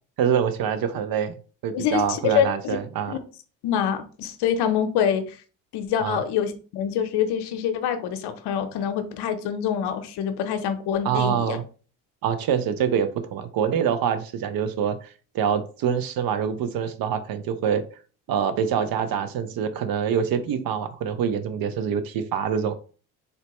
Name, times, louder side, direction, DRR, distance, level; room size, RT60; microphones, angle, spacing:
voice 1, 0.2-1.3 1.6-3.1 6.0-6.2 11.0-11.6 12.2-17.8 18.3-22.7, right 8 dB, 55° right, 10 dB, 0.6 m, -25 dB
voice 2, 1.7-2.8 3.1-3.2 3.6-5.4 5.7-11.6, left 8 dB, 65° left, 9 dB, 0.7 m, -25 dB
4.0 x 2.2 x 2.9 m, 0.38 s
supercardioid pair, 70°, 43 cm